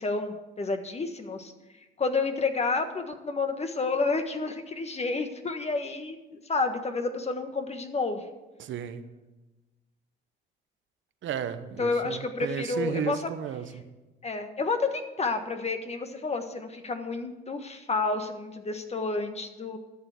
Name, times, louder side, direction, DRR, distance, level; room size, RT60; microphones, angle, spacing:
voice 1, 0.0-1.5 2.0-8.3 11.8-13.3 14.2-19.8, left 3 dB, 30° left, 6 dB, 1.5 m, -30 dB
voice 2, 8.6-9.0 11.2-13.8, right 8 dB, 75° right, 10 dB, 1.1 m, -34 dB
12.5 x 7.0 x 8.3 m, 1.1 s
cardioid pair, 90°, 20 cm